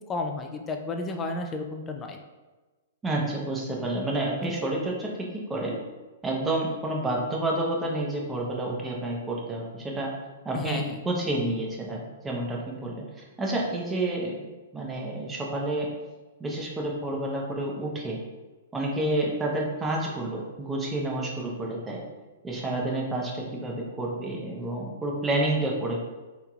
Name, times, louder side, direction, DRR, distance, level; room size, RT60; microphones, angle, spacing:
voice 1, 0.1-2.2 10.5-11.0, left 3 dB, 20° left, 4 dB, 0.3 m, -32 dB
voice 2, 3.0-5.8 6.2-10.1 10.4-14.3 14.7-15.9 16.4-18.2 18.7-22.0 22.4-26.0, right 1 dB, 15° right, -1 dB, 0.7 m, -29 dB
3.6 x 2.9 x 2.3 m, 1.2 s
hypercardioid pair, 125°, 0 cm